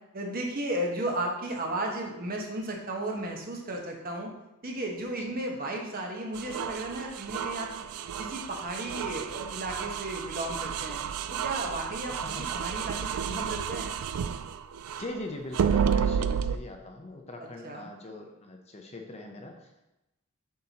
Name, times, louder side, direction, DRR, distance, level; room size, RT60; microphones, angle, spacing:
voice 1, 0.1-4.3 4.6-7.7 8.2-11.0 11.3-13.9 17.4-17.9, right 1 dB, 40° right, 0 dB, 1.1 m, -34 dB
sound 1, 6.3-15.1 15.5-16.6, right 7 dB, 85° right, 0.4 m, -31 dB
voice 2, 15.0-19.8, left 2 dB, 30° left, 3 dB, 0.7 m, -41 dB
7.5 x 5.7 x 2.9 m, 0.93 s
head